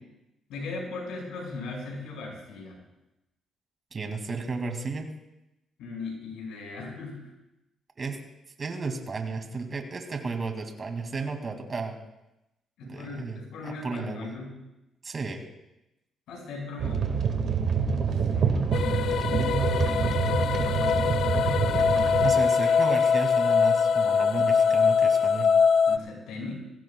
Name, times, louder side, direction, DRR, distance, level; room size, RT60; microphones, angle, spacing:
voice 1, 0.5-2.8 5.8-7.3 12.8-14.6 16.3-17.1 17.8-19.6 25.9-26.5, left 3 dB, 85° left, -1 dB, 5.8 m, -38 dB
voice 2, 3.9-5.1 8.0-8.2 8.6-12.0 12.8-14.3 15.0-15.4 22.2-25.5, right 4 dB, 40° right, 4 dB, 2.4 m, -33 dB
sound 1, 16.8-22.3, right 6 dB, 65° right, 1.9 m, -26 dB
sound 2, 18.7-26.0, left 6 dB, 70° left, 0.5 m, -23 dB
21.5 x 16.5 x 2.3 m, 0.91 s
cardioid pair, 90°, 0 cm